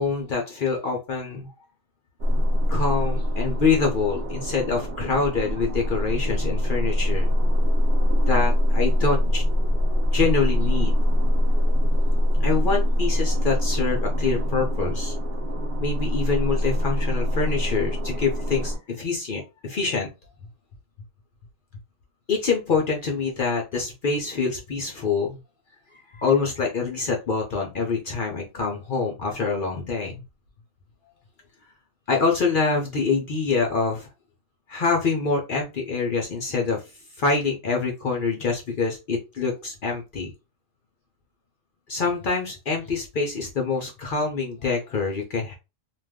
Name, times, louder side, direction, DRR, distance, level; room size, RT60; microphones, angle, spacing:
voice 1, 0.0-1.5 2.7-7.3 8.3-9.4 10.1-11.0 12.4-15.1 15.8-20.1 22.3-25.4 26.1-30.2 32.1-34.1 34.7-36.8 37.2-40.3 41.9-45.5, left 4 dB, 60° left, 1 dB, 0.6 m, -25 dB
sound 1, 2.2-18.8, left 1 dB, 60° right, 0.7 m, -23 dB
2.5 x 2.2 x 3.4 m, 0.28 s
omnidirectional pair, 1.4 m